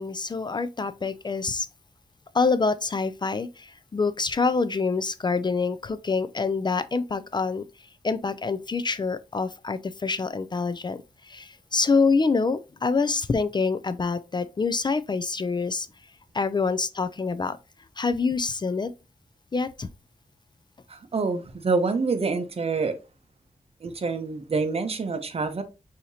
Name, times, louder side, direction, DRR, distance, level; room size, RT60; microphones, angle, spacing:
voice 1, 0.0-1.7 2.3-7.6 8.0-11.0 11.3-15.9 16.3-17.6 18.0-18.9 19.5-19.9, left 4 dB, 30° left, 0.3 m, -26 dB
voice 2, 20.9-22.9 23.8-25.6, right 4 dB, 45° right, 0.7 m, -26 dB
6.3 x 2.8 x 2.7 m
wide cardioid pair, 105°, 14 cm